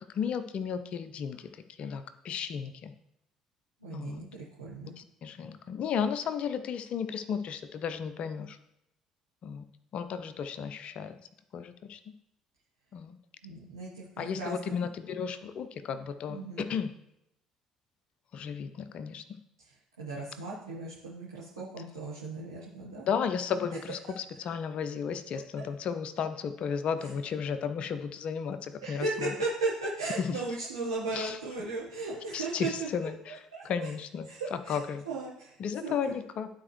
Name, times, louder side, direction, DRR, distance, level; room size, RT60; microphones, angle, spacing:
voice 1, 0.1-1.5 1.8-2.9 3.9-4.2 5.0-8.6 9.4-9.6 9.9-11.2 11.5-12.0 12.9-13.2 14.2-16.9 18.3-19.4 23.1-29.3 30.2-30.3 31.1-31.4 32.3-33.4 33.6-34.3 34.7-35.0 35.6-36.5, left 7 dB, 50° left, 11 dB, 0.6 m, -34 dB
voice 2, 3.8-4.9 13.4-14.7 16.3-16.6 19.7-23.0 27.0-27.1 28.8-33.9 34.3-35.6 35.8-36.1, right 3 dB, 80° right, -7 dB, 1.3 m, -36 dB
11.5 x 4.4 x 3.1 m, 0.81 s
figure-of-eight pair, 50°, 2 cm